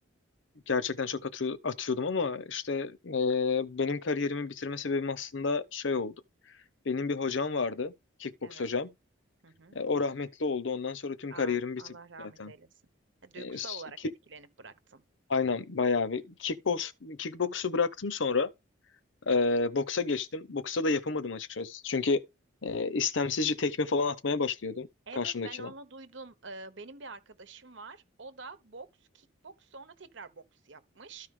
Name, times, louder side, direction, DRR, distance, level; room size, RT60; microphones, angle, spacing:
voice 1, 0.7-6.1 6.9-7.9 8.2-8.9 9.7-11.8 12.2-12.5 13.4-13.8 15.3-18.5 19.2-22.2 22.6-24.9 25.2-25.7, left 4 dB, 70° left, 0.8 m, -30 dB
voice 2, 8.4-8.7 9.4-9.8 11.3-12.7 13.2-15.0 25.1-28.9 29.1-31.3, right 3 dB, 65° right, 1.0 m, -47 dB
13.0 x 4.7 x 3.7 m
head